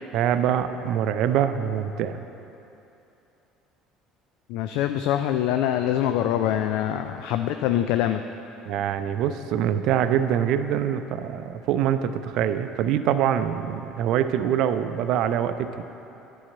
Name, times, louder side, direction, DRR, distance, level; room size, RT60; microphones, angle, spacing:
voice 1, 0.1-2.2 8.7-15.8, right 9 dB, 60° right, 10 dB, 0.5 m, -24 dB
voice 2, 4.5-8.2, left 11 dB, 70° left, 8 dB, 0.3 m, -24 dB
9.9 x 5.5 x 7.5 m, 2.9 s
hypercardioid pair, 65°, 0 cm